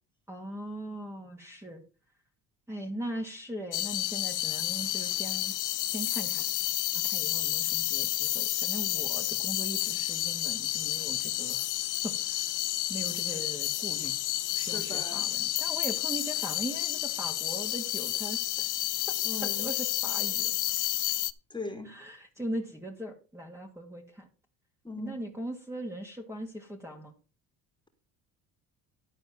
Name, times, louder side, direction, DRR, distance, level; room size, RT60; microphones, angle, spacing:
voice 1, 0.3-1.8 2.7-5.6 5.9-6.5 6.9-11.7 12.0-12.6 12.9-14.2 14.5-18.7 19.4-20.6 21.8-24.3 25.0-27.1, right 1 dB, 5° right, 2.3 m, -40 dB
sound 1, 3.7-21.3, left 14 dB, 50° left, 0.7 m, -30 dB
voice 2, 14.6-15.3 19.2-19.7 21.5-21.9 24.8-25.2, left 2 dB, 10° left, 2.6 m, -39 dB
12.0 x 4.3 x 7.2 m
supercardioid pair, 90°, 39 cm